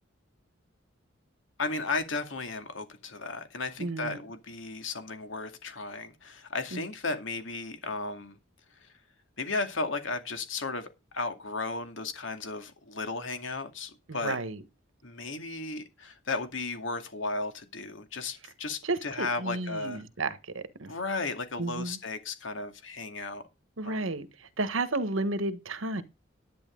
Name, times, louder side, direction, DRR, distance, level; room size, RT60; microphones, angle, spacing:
voice 1, 1.6-8.4 8.8-8.9 9.4-14.4 15.0-20.0 20.8-23.4 23.8-24.2, left 3 dB, 70° left, 2.3 m, -35 dB
voice 2, 3.8-4.2 6.7-6.8 14.1-14.6 18.8-20.9 21.6-22.0 23.8-26.0, right 2 dB, 80° right, 1.4 m, -32 dB
10.5 x 10.0 x 3.9 m
head